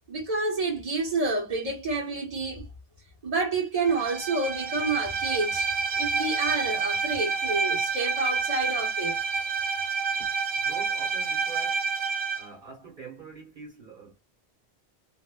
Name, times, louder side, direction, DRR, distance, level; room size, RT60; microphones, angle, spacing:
voice 1, 0.1-2.7 3.2-5.7 6.0-9.2, right 3 dB, 40° right, 1.2 m, -29 dB
Bowed string instrument, 3.8-12.5, right 5 dB, 90° right, 0.9 m, -28 dB
voice 2, 10.5-11.8 12.3-14.2, right 4 dB, 65° right, 1.5 m, -45 dB
2.8 x 2.1 x 2.2 m
omnidirectional pair, 1.0 m